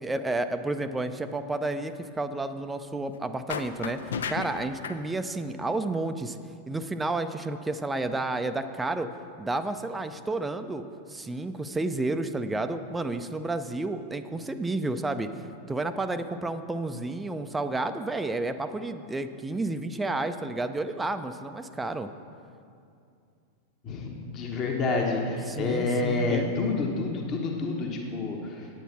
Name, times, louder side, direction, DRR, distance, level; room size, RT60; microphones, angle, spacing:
voice 1, 0.0-4.0 4.3-6.4 6.7-9.1 9.4-10.8 11.1-15.3 15.7-22.1 25.5-26.5, right 2 dB, 10° right, 9 dB, 0.5 m, -31 dB
sound 1, 3.5-5.0, left 6 dB, 65° left, 0.5 m, -33 dB
voice 2, 23.8-28.7, left 3 dB, 35° left, 1 dB, 1.2 m, -28 dB
9.1 x 9.0 x 5.9 m, 2.5 s
figure-of-eight pair, 90°, 0 cm